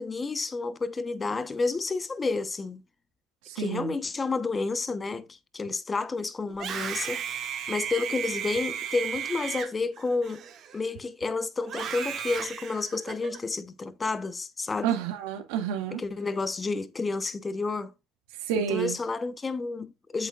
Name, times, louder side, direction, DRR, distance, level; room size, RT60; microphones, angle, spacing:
voice 1, 0.0-2.8 3.6-10.5 10.7-15.0 16.0-17.9 18.5-20.3, left 3 dB, 20° left, 1.0 m, -30 dB
voice 2, 3.5-3.9 14.8-16.0 18.4-19.0, right 9 dB, 80° right, 2.1 m, -29 dB
Screaming, 6.5-11.0 11.6-13.4, right 8 dB, 50° right, 2.0 m, -35 dB
8.2 x 7.9 x 2.5 m
supercardioid pair, 105°, 0 cm